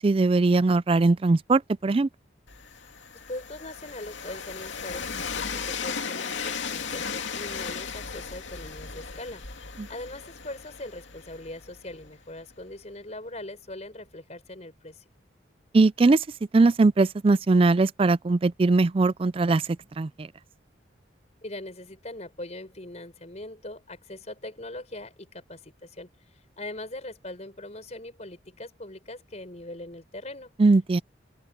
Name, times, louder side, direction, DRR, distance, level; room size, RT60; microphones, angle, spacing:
voice 1, 0.0-2.1 9.8-9.9 15.7-16.2 16.5-19.6 20.0-20.3 30.6-31.0, right 3 dB, 30° right, 0.3 m, -20 dB
Train, 2.5-12.3, left 6 dB, 75° left, 2.5 m, -36 dB
voice 2, 3.3-9.5 9.9-15.0 21.4-26.1 26.6-30.5, left 1 dB, 35° left, 4.8 m, -41 dB
head